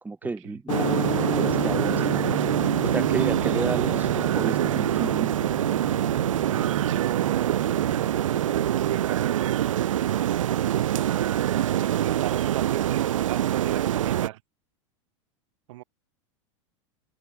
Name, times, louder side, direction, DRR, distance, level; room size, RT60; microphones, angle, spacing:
voice 1, 0.0-5.3, right 3 dB, 10° right, 3.2 m, -33 dB
sound 1, 0.7-9.1, left 11 dB, 35° left, 2.8 m, -36 dB
sound 2, 0.7-14.3, right 11 dB, 90° right, 1.5 m, -24 dB
voice 2, 6.8-7.7 8.5-9.8 11.9-14.4 15.7-15.8, right 18 dB, 70° right, 5.0 m, -36 dB
supercardioid pair, 120°, 16 cm